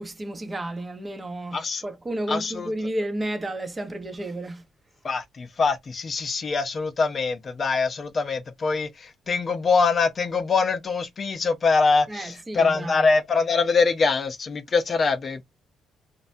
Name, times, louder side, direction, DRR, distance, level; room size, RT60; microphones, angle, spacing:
voice 1, 0.0-4.6 12.1-13.1, right 1 dB, 25° right, 0.7 m, -32 dB
voice 2, 1.5-1.8 2.3-2.7 5.0-15.4, left 4 dB, 45° left, 0.5 m, -23 dB
3.2 x 2.1 x 2.6 m
cardioid pair, 90°, 0 cm